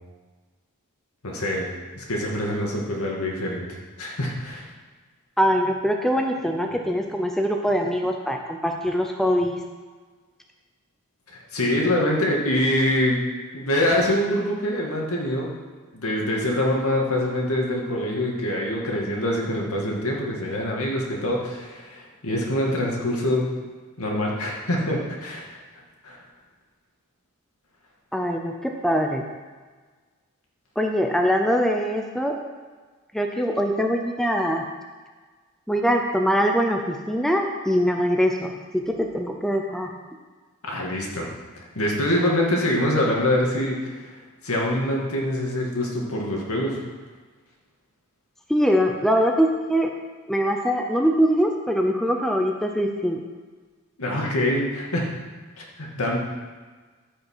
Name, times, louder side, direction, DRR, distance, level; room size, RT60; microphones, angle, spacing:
voice 1, 1.2-1.7 2.0-3.7 4.0-4.7 11.3-13.2 13.5-15.5 15.9-23.5 24.0-25.4 26.0-26.2 40.6-41.3 41.8-43.8 44.4-46.8 54.0-55.1 55.6-56.2, left 1 dB, 75° left, -2 dB, 2.3 m, -24 dB
voice 2, 5.4-9.6 28.1-29.3 30.8-32.4 33.1-34.7 35.7-39.9 48.5-49.9 50.3-53.2, equal, ahead, 2 dB, 0.6 m, -23 dB
13.5 x 5.7 x 5.6 m, 1.4 s
head